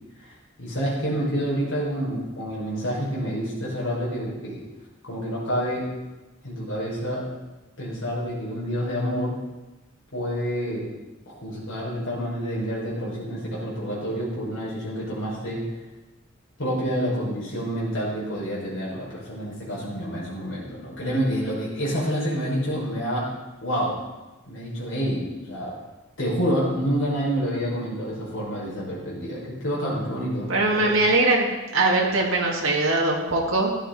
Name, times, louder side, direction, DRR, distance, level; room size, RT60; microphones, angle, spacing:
voice 1, 0.6-4.6 5.1-5.8 6.4-7.2 7.8-9.4 10.1-10.9 11.3-15.6 16.6-23.3 23.6-23.9 24.5-25.8 26.2-30.9, equal, 75° left, -6 dB, 5.5 m, -28 dB
voice 2, 30.5-31.5 31.7-33.7, right 2 dB, 90° right, -2 dB, 2.0 m, -21 dB
15.0 x 11.0 x 4.1 m, 1.1 s
head